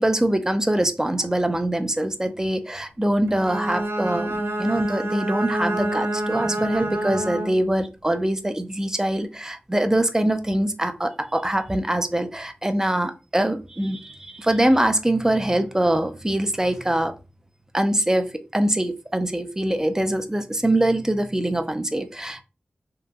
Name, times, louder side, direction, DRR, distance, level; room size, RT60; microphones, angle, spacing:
voice 1, 0.0-17.1 17.7-22.4, right 1 dB, 15° right, 8 dB, 0.4 m, -23 dB
Bowed string instrument, 3.3-7.8, right 1 dB, 80° right, 0.5 m, -27 dB
2.8 x 2.5 x 2.3 m, 0.30 s
wide cardioid pair, 65°, 4 cm